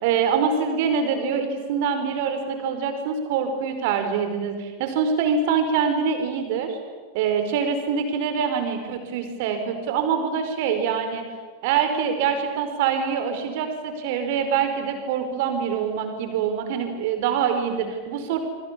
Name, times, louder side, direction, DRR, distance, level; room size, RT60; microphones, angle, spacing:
voice 1, 0.0-6.8 7.1-11.2 11.6-18.4, right 6 dB, 50° right, 7 dB, 5.0 m, -24 dB
27.5 x 24.0 x 8.7 m, 1.4 s
figure-of-eight pair, 90°, 0 cm